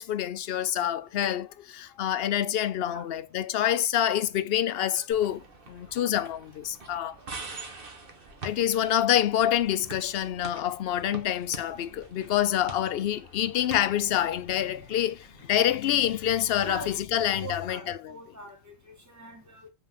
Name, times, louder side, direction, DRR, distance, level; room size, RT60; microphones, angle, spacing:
voice 1, 0.0-7.2 8.4-18.2, left 11 dB, 65° left, 0.7 m, -27 dB
sound 1, 5.1-15.6, right 3 dB, 55° right, 1.5 m, -46 dB
voice 2, 16.6-17.0 17.4-19.7, right 3 dB, 15° right, 1.8 m, -44 dB
5.6 x 4.0 x 5.7 m
omnidirectional pair, 1.1 m